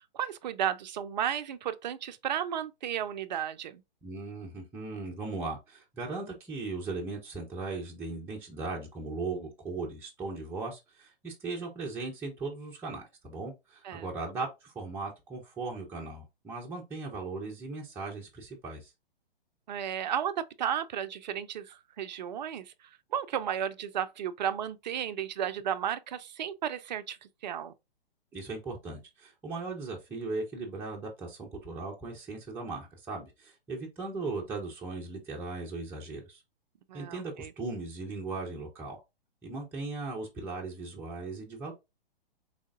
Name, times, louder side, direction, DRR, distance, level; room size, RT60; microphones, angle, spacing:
voice 1, 0.0-3.8 13.8-14.1 19.7-22.7 23.1-27.7 36.9-37.5, right 9 dB, 50° right, 0.4 m, -33 dB
voice 2, 4.0-18.9 28.3-36.4 36.9-39.0 39.4-41.7, right 3 dB, 5° right, 0.6 m, -38 dB
3.6 x 3.3 x 2.4 m
figure-of-eight pair, 125°, 30 cm